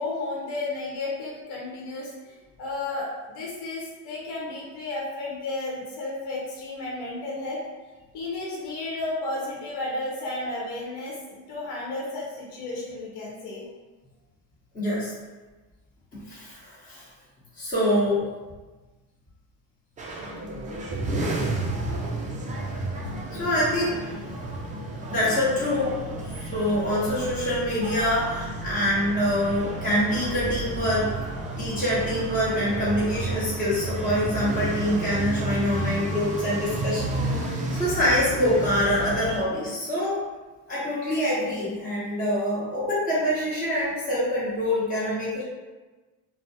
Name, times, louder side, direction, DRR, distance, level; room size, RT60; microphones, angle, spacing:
voice 1, 0.0-7.6 8.1-13.7, left 2 dB, 65° left, -5 dB, 1.0 m, -33 dB
voice 2, 14.7-15.1 16.3-17.1 17.5-18.2 23.3-24.0 25.1-26.0 26.2-31.2 31.6-40.2 40.7-45.4, equal, 15° left, -10 dB, 1.1 m, -25 dB
sound 1, 20.0-39.4, right 1 dB, 20° right, 0.3 m, -31 dB
2.4 x 2.2 x 2.7 m, 1.2 s
supercardioid pair, 90°, 46 cm